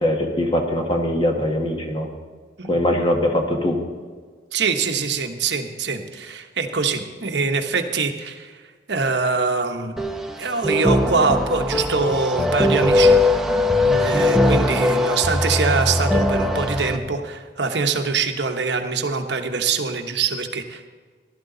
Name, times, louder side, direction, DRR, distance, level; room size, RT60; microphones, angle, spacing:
voice 1, 0.0-2.1 2.7-3.8, left 1 dB, 30° left, 2 dB, 1.7 m, -21 dB
voice 2, 4.5-8.6 8.9-9.9 10.4-13.2 13.5-20.9, right 4 dB, 70° right, 5 dB, 1.1 m, -24 dB
sound 1, 10.0-17.0, left 1 dB, ahead, 0.8 m, -20 dB
15.5 x 12.0 x 3.9 m, 1.5 s
head